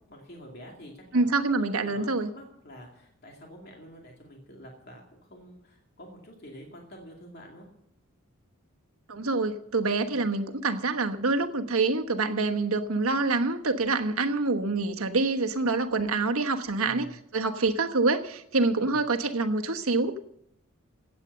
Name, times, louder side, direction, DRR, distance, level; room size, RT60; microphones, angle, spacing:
voice 1, 0.1-7.7 10.1-10.2 16.8-17.2 18.7-19.0, equal, 50° left, 0 dB, 2.4 m, -47 dB
voice 2, 1.1-2.3 9.1-20.2, right 3 dB, 85° right, 6 dB, 1.2 m, -26 dB
16.0 x 8.3 x 6.7 m, 0.72 s
head